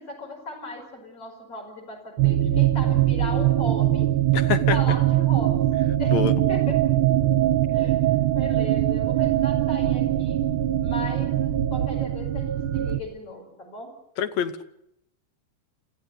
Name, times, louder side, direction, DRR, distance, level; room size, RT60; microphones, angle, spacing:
voice 1, 0.0-4.1 4.7-5.6 6.0-6.2 6.5-7.0 7.7-10.4 10.8-13.9, left 2 dB, 50° left, 2 dB, 6.5 m, -37 dB
sound 1, 2.2-13.0, right 13 dB, 60° right, 1.4 m, -22 dB
voice 2, 4.3-4.8 6.1-6.3 14.2-14.6, left 9 dB, 70° left, 12 dB, 2.2 m, -25 dB
sound 2, 5.1-13.2, right 1 dB, 35° left, 3.9 m, -45 dB
27.5 x 14.5 x 8.2 m, 0.78 s
omnidirectional pair, 3.3 m